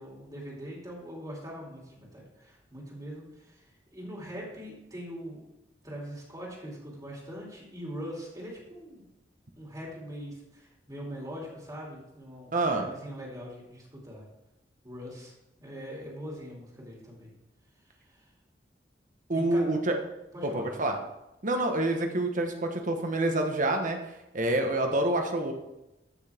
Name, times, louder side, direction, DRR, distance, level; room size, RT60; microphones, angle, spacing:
voice 1, 0.0-3.6 3.9-5.4 5.8-9.0 9.5-14.2 14.8-15.3 15.6-17.3 18.1-18.2 19.3-19.6 20.3-20.7, equal, 20° right, -3 dB, 2.8 m, -42 dB
voice 2, 12.5-12.9 19.3-19.9 20.4-21.0 21.4-24.0 24.3-25.5, right 2 dB, 50° right, 4 dB, 1.3 m, -27 dB
14.0 x 6.3 x 3.6 m, 0.94 s
head